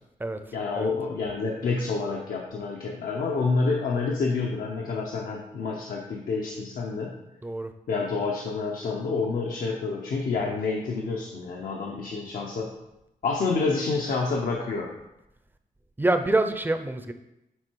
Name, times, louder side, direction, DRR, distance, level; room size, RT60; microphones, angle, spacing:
voice 1, 0.5-7.2 7.9-12.7 13.2-14.9, left 4 dB, 75° left, -1 dB, 0.8 m, -28 dB
voice 2, 16.0-17.1, right 2 dB, 15° right, 8 dB, 0.5 m, -25 dB
7.8 x 3.5 x 4.6 m, 0.89 s
cardioid pair, 100°, 15 cm